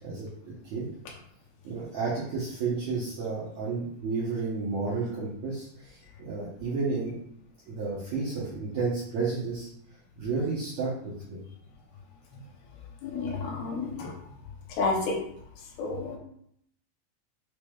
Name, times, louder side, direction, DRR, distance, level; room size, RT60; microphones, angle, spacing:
voice 1, 0.0-0.9 1.6-7.2 7.7-9.7 10.2-11.4, right 4 dB, 70° right, -8 dB, 1.7 m, -32 dB
voice 2, 13.0-14.1 14.8-15.2 15.8-16.2, left 3 dB, 80° left, -1 dB, 2.7 m, -30 dB
6.8 x 3.2 x 2.3 m, 0.69 s
omnidirectional pair, 4.4 m